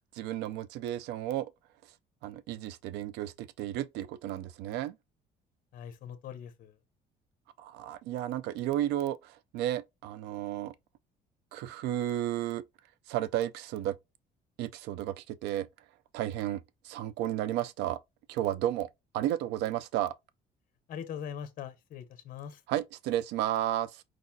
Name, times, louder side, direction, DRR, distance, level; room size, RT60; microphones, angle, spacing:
voice 1, 0.1-1.5 2.2-5.0 7.6-10.7 11.5-12.6 13.1-14.0 14.6-15.7 16.1-18.0 18.3-18.9 19.1-20.1 22.7-24.0, right 12 dB, 90° right, 0.4 m, -33 dB
voice 2, 5.7-6.8 20.9-22.6, left 8 dB, 55° left, 0.8 m, -41 dB
4.7 x 4.0 x 2.7 m
cardioid pair, 110°, 17 cm